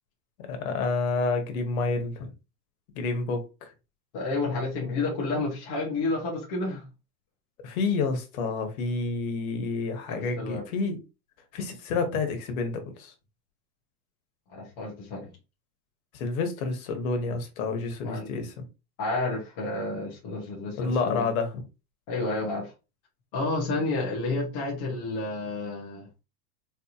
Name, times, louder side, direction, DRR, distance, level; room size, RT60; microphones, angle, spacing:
voice 1, 0.4-2.3 2.9-3.7 7.6-11.0 11.5-13.1 16.1-18.6 20.8-21.5, left 4 dB, 55° left, 1.1 m, -29 dB
voice 2, 4.1-6.9 10.1-10.6 14.5-15.3 18.0-18.3 19.0-21.3 22.1-22.7 23.3-26.1, left 2 dB, 20° left, 0.3 m, -30 dB
4.0 x 2.9 x 2.4 m
supercardioid pair, 160°, 50 cm